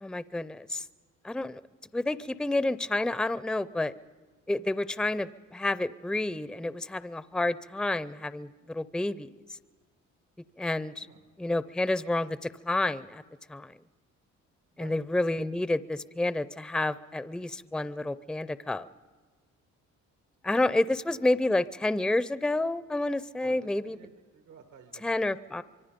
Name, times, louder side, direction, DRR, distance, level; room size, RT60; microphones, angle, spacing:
voice 1, 0.0-0.8 1.2-1.6 1.9-3.9 4.5-9.3 10.6-11.1 11.4-13.2 13.5-13.7 14.8-18.9 20.4-24.0 25.0-25.6, left 2 dB, ahead, 16 dB, 0.5 m, -29 dB
voice 2, 23.4-25.6, right 7 dB, 85° right, 6 dB, 2.1 m, -53 dB
25.0 x 24.0 x 5.2 m, 1.4 s
cardioid pair, 90°, 30 cm